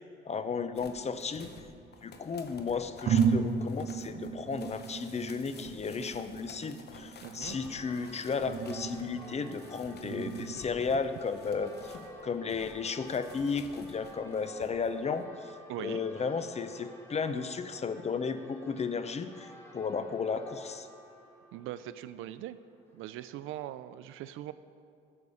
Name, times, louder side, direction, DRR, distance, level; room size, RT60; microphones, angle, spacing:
voice 1, 0.3-1.5 2.0-11.9 12.2-15.5 15.8-19.5 19.7-20.9, left 5 dB, 35° left, 11 dB, 0.6 m, -34 dB
sound 1, 0.7-12.1 12.5-14.9 15.2-15.3, left 4 dB, 55° left, 1.0 m, -52 dB
sound 2, 0.7-2.0 2.6-2.7 3.0-10.6, right 6 dB, 50° right, 0.7 m, -34 dB
voice 2, 7.2-7.6 15.7-16.0 21.5-22.6 22.9-24.5, right 13 dB, 90° right, 14 dB, 0.4 m, -41 dB
Church bell, 7.4-23.1, right 1 dB, 10° left, 1.6 m, -53 dB
11.0 x 7.1 x 4.9 m, 2.3 s
cardioid pair, 90°, 20 cm